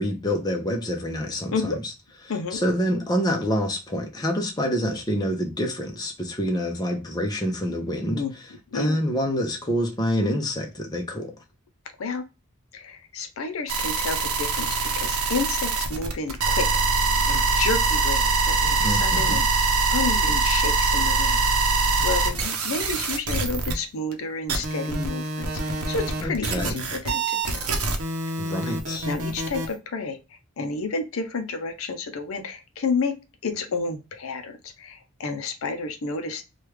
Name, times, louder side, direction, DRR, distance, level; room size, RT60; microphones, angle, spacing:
voice 1, 0.0-1.7 2.5-8.2 8.7-11.3 18.8-19.4 26.2-26.8 28.4-29.1, equal, 20° left, 0.6 m, -27 dB
voice 2, 1.5-1.8 2.3-2.6 8.1-8.3 8.7-9.0 12.0-12.2 12.7-21.4 22.0-27.7 29.0-33.2 33.4-36.4, left 4 dB, 65° left, 0.5 m, -31 dB
sound 1, 13.7-23.7 24.1-24.2 24.5-29.7, right 3 dB, 75° right, 0.7 m, -24 dB
3.1 x 2.3 x 3.1 m
head